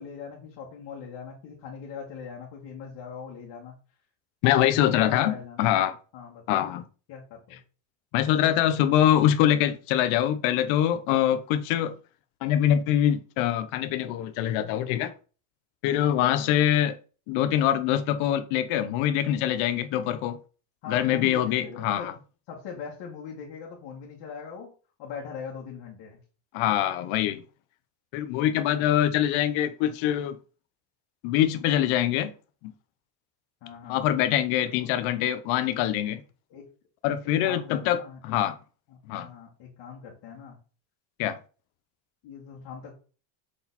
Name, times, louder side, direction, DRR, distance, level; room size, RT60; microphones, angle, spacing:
voice 1, 0.0-3.8 4.6-5.7 6.1-6.6 7.1-7.6 20.8-22.2 22.5-24.7 25.0-26.2 28.8-29.0 33.6-34.0 34.5-34.9 36.5-36.7 37.2-38.4 38.9-40.6 42.2-42.9, left 6 dB, 55° left, 2.0 m, -41 dB
voice 2, 4.4-5.9 6.5-6.8 8.1-11.9 12.4-15.1 15.8-17.0 17.3-20.4 20.9-22.1 26.5-27.4 28.1-30.4 31.2-32.3 32.6-32.7 33.9-36.2 37.0-38.0 38.2-38.5 39.1-39.3 41.2-41.4, left 11 dB, 75° left, 0.9 m, -24 dB
6.5 x 4.2 x 4.2 m
cardioid pair, 135°, 48 cm